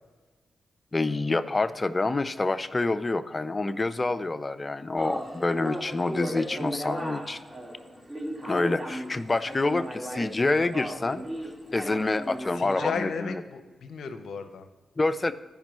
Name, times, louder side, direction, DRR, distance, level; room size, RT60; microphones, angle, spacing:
voice 1, 0.9-7.4 8.5-11.2 11.7-13.4 15.0-15.3, left 2 dB, 35° left, 12 dB, 0.5 m, -27 dB
sound 1, 5.0-13.0, equal, 20° right, 1.9 m, -36 dB
voice 2, 12.6-14.7, left 6 dB, 75° left, 8 dB, 0.7 m, -34 dB
14.0 x 5.2 x 3.1 m, 1.4 s
supercardioid pair, 45°, 0 cm